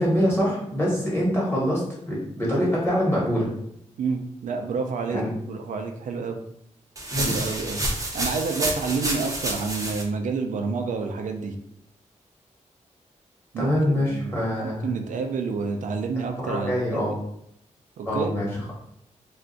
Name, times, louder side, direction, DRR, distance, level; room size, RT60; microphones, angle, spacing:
voice 1, 0.0-3.5 5.1-5.3 7.1-7.3 13.6-15.0 16.3-17.1 18.0-18.5, equal, 15° left, -5 dB, 1.2 m, -24 dB
voice 2, 4.0-6.4 7.2-7.8 8.1-11.5 13.5-17.1 18.0-18.3, right 4 dB, 80° right, 5 dB, 0.4 m, -29 dB
sound 1, 7.0-10.0, right 1 dB, 25° right, 0.5 m, -29 dB
2.5 x 2.3 x 3.8 m, 0.72 s
wide cardioid pair, 160°, 13 cm